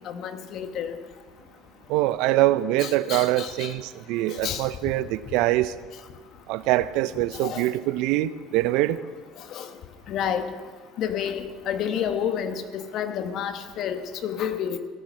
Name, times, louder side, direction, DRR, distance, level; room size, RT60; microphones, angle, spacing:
voice 1, 0.0-1.0 2.8-3.7 4.4-4.7 7.4-7.6 9.5-9.7 10.1-10.5 11.0-14.8, left 8 dB, 55° left, 8 dB, 1.3 m, -30 dB
voice 2, 1.9-5.7 6.5-9.0, right 15 dB, 70° right, 16 dB, 0.5 m, -24 dB
16.5 x 8.9 x 6.3 m, 1.5 s
hypercardioid pair, 75°, 0 cm